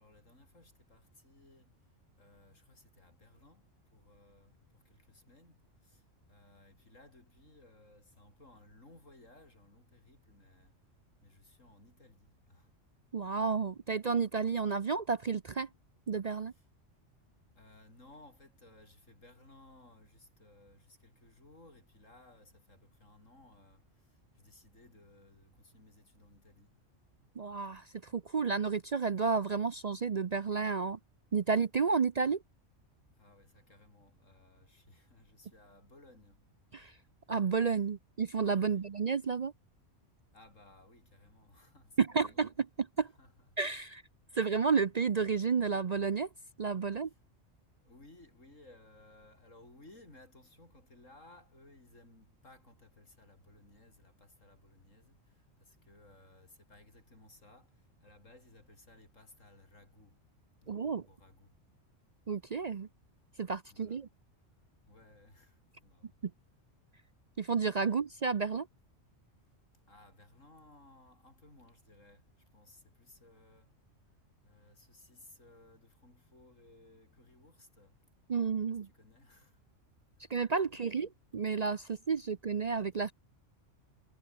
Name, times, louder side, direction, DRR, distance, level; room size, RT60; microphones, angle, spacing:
voice 1, 0.0-1.8 2.2-10.7 11.2-12.7 16.5-16.7 17.6-26.7 28.3-28.4 33.2-36.4 38.6-38.9 40.3-42.5 43.0-43.5 44.3-44.5 47.0-47.2 47.8-60.2 60.6-61.5 63.7-64.0 64.9-66.2 67.8-68.0 69.9-73.7 74.4-78.0 78.7-79.6 80.7-81.1, left 2 dB, 85° left, 6.7 m, -60 dB
voice 2, 13.1-15.7 16.1-16.5 27.4-31.0 31.3-32.4 36.7-36.9 37.3-39.5 42.0-42.5 42.8-43.1 43.6-44.0 44.3-46.3 46.6-47.1 60.7-61.0 62.3-62.9 63.4-64.1 66.2-66.3 67.4-68.7 78.3-78.9 80.3-83.1, right 5 dB, 45° right, 0.6 m, -31 dB
omnidirectional pair, 1.3 m